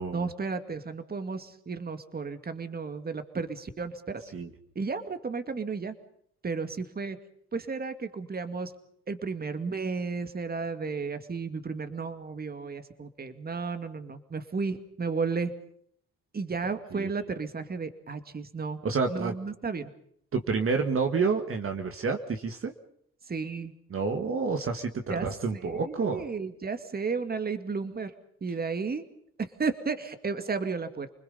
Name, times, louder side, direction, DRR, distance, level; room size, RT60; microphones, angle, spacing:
voice 1, 0.1-4.2 4.8-5.9 6.4-7.2 7.5-8.7 9.1-15.5 16.3-18.8 19.1-19.9 23.3-23.7 25.1-28.1 28.4-29.0 29.4-31.1, right 4 dB, 30° right, 9 dB, 2.2 m, -33 dB
voice 2, 18.8-19.3 20.3-22.7 23.9-26.2, right 4 dB, 45° right, 5 dB, 1.9 m, -29 dB
29.5 x 21.0 x 5.5 m, 0.68 s
cardioid pair, 90°, 30 cm